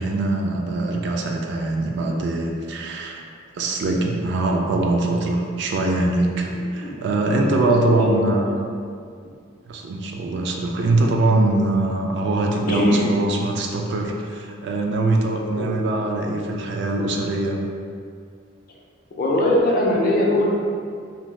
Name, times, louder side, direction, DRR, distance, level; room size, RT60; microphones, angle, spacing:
voice 1, 0.0-3.2 3.5-8.5 9.7-17.6, right 2 dB, 60° right, 1 dB, 0.3 m, -22 dB
voice 2, 6.8-8.5 12.7-13.1 15.5-15.7 19.2-20.5, left 1 dB, 45° left, -2 dB, 0.5 m, -22 dB
2.6 x 2.2 x 3.2 m, 2.2 s
head